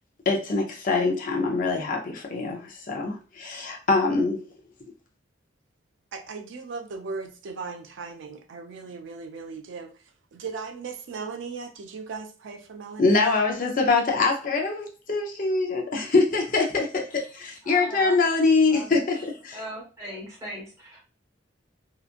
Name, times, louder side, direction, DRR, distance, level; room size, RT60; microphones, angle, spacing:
voice 1, 0.3-4.4 13.0-19.6, left 3 dB, 45° left, 1 dB, 0.6 m, -24 dB
voice 2, 6.1-9.9 10.3-13.4, right 4 dB, 80° right, 6 dB, 0.4 m, -37 dB
voice 3, 17.6-18.2 18.7-18.9 19.5-21.0, equal, 15° right, -5 dB, 1.3 m, -38 dB
2.8 x 2.4 x 2.4 m, 0.34 s
head